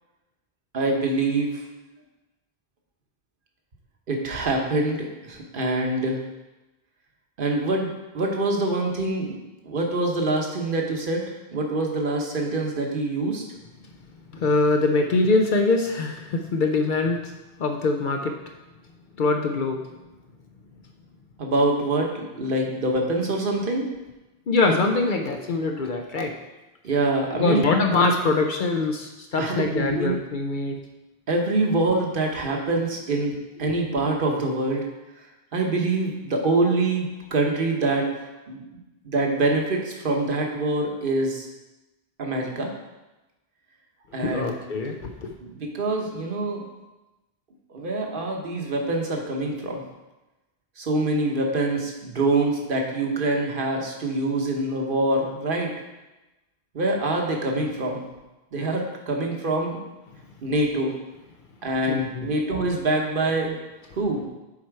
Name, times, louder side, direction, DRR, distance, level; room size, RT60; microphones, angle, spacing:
voice 1, 0.7-1.6 4.1-6.2 7.4-9.4 9.6-13.4 21.4-23.9 26.8-27.7 29.4-30.2 31.3-34.8 35.5-38.1 38.5-38.6 39.0-41.5 42.2-42.7 44.1-44.5 45.4-46.7 47.7-49.8 50.8-55.7 56.7-58.0 58.5-59.8 60.4-60.9 61.6-63.6 63.9-64.2, right 2 dB, 60° right, 1 dB, 1.2 m, -25 dB
voice 2, 14.3-17.3 17.6-18.4 19.2-19.8 24.5-26.3 27.3-30.8 44.2-45.3 61.9-62.3, left 3 dB, 60° left, 4 dB, 0.7 m, -23 dB
7.3 x 4.4 x 4.6 m, 1.0 s
omnidirectional pair, 1.0 m